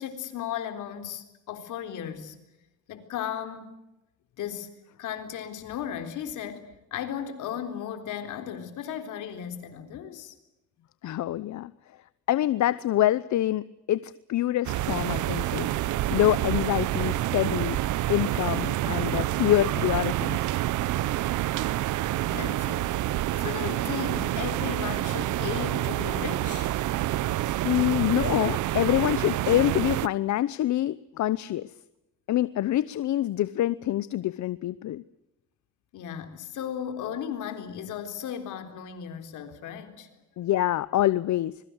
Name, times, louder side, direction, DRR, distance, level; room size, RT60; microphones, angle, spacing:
voice 1, 0.0-2.4 2.9-3.8 4.4-4.7 5.0-10.3 22.1-26.7 35.9-40.1, left 9 dB, 85° left, 7 dB, 3.9 m, -36 dB
voice 2, 11.0-11.7 12.3-15.7 16.1-17.8 18.1-20.4 27.6-31.7 32.3-35.0 40.4-41.6, left 13 dB, 70° left, 17 dB, 0.8 m, -26 dB
sound 1, 14.6-30.1, right 14 dB, 80° right, 0.9 m, -28 dB
25.5 x 22.5 x 8.0 m, 0.94 s
cardioid pair, 90°, 30 cm